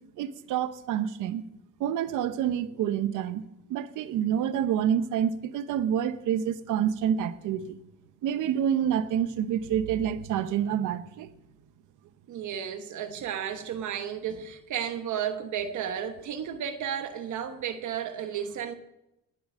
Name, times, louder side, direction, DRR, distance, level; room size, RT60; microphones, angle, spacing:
voice 1, 0.2-1.4 1.8-3.4 3.7-7.8 8.2-11.3, right 9 dB, 90° right, 0.9 m, -28 dB
voice 2, 12.3-18.7, right 8 dB, 75° right, 1.3 m, -33 dB
19.0 x 7.9 x 6.3 m
cardioid pair, 90°, 30 cm